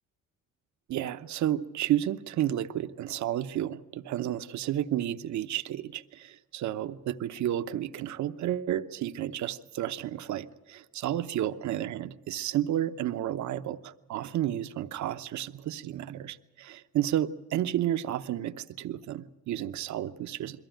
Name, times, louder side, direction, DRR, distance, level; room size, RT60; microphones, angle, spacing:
voice 1, 0.9-20.6, right 12 dB, 70° right, 10 dB, 0.8 m, -31 dB
22.0 x 15.0 x 9.1 m, 1.1 s
cardioid pair, 90°, 30 cm